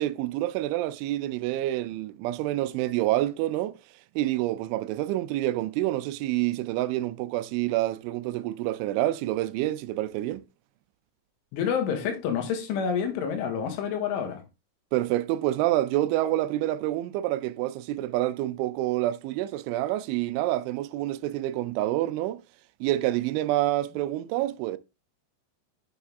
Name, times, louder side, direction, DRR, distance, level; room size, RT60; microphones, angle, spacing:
voice 1, 0.0-3.8 4.2-10.4 14.9-22.4 22.8-24.8, right 15 dB, 85° right, 3.0 m, -27 dB
voice 2, 11.5-14.4, left 7 dB, 90° left, 4.3 m, -28 dB
8.9 x 6.7 x 3.4 m
omnidirectional pair, 5.4 m